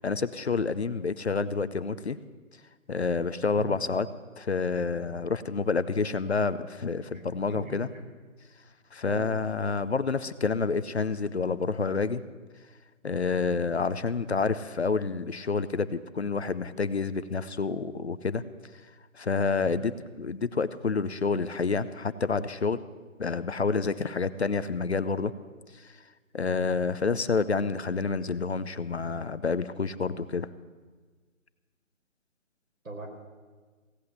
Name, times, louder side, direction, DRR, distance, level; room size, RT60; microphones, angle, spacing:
voice 1, 0.0-2.2 2.9-4.1 4.4-7.9 8.9-12.2 13.0-18.4 19.1-19.9 20.2-22.8 23.2-25.3 25.7-25.9 26.3-30.5, left 4 dB, 55° left, 14 dB, 0.6 m, -28 dB
voice 2, 7.5-8.0 9.0-9.2 19.6-19.8 32.8-33.1, right 2 dB, 75° right, 0 dB, 4.7 m, -40 dB
16.5 x 8.4 x 7.9 m, 1.4 s
hypercardioid pair, 175°, 41 cm